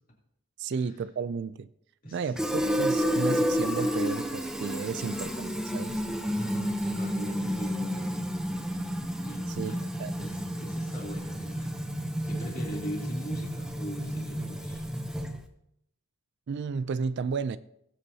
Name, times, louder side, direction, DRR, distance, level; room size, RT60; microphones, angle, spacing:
voice 1, 0.6-1.7 2.1-6.0 9.6-9.7 10.0-10.1 16.5-17.6, right 5 dB, 50° right, 0.3 m, -33 dB
voice 2, 2.0-2.4 6.2-8.1 9.2-9.8 10.2-11.7 12.2-14.8, equal, 40° left, 3.0 m, -40 dB
Fill (with liquid), 2.4-15.5, equal, 5° right, 0.7 m, -31 dB
19.5 x 8.2 x 2.8 m
head